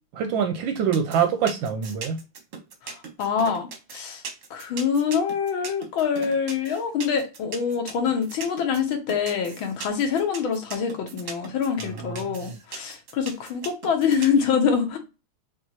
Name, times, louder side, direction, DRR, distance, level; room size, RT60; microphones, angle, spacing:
voice 1, 0.1-2.2 12.1-12.3, right 7 dB, 75° right, 1.2 m, -24 dB
sound 1, 0.8-14.4, right 5 dB, 55° right, 1.0 m, -38 dB
voice 2, 2.8-4.2 4.5-15.0, left 6 dB, 70° left, 1.7 m, -25 dB
5.4 x 2.7 x 2.9 m
omnidirectional pair, 2.4 m